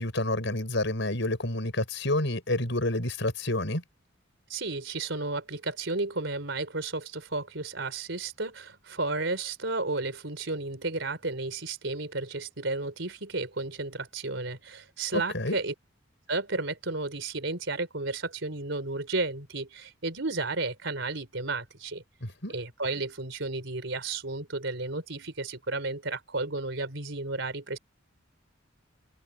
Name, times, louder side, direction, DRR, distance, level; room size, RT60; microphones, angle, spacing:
voice 1, 0.0-3.8 15.1-15.6 22.2-22.5, left 1 dB, 65° left, 7.8 m, -29 dB
voice 2, 4.5-15.7 16.3-22.0 22.5-27.8, right 3 dB, 70° right, 4.4 m, -33 dB
head